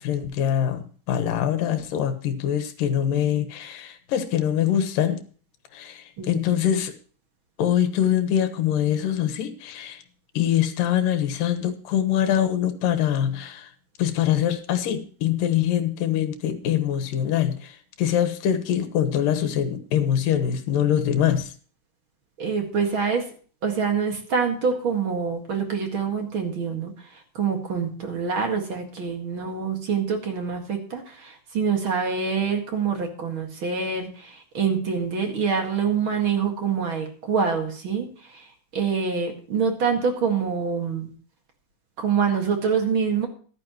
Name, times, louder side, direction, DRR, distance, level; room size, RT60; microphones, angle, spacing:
voice 1, 0.0-5.2 5.7-6.9 7.6-10.0 10.3-13.7 14.0-21.5, left 10 dB, 80° left, 7 dB, 2.8 m, -24 dB
voice 2, 22.4-23.2 23.6-26.9 27.4-38.4 38.7-41.1 42.0-43.3, right 6 dB, 40° right, 3 dB, 2.3 m, -25 dB
14.5 x 11.5 x 3.1 m, 0.42 s
omnidirectional pair, 4.0 m